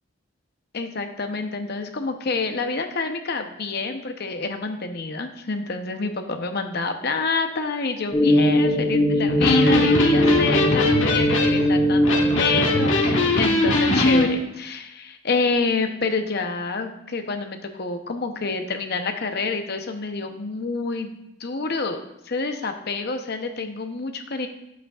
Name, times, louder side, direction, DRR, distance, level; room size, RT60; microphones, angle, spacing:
voice 1, 0.7-21.1 21.4-22.0 22.2-24.5, left 4 dB, 50° left, 6 dB, 0.7 m, -28 dB
sound 1, 8.1-13.2, equal, 15° left, 2.3 m, -20 dB
Electric guitar, 9.3-14.3, left 2 dB, 70° left, 1.5 m, -21 dB
10.0 x 8.1 x 2.4 m, 0.88 s
head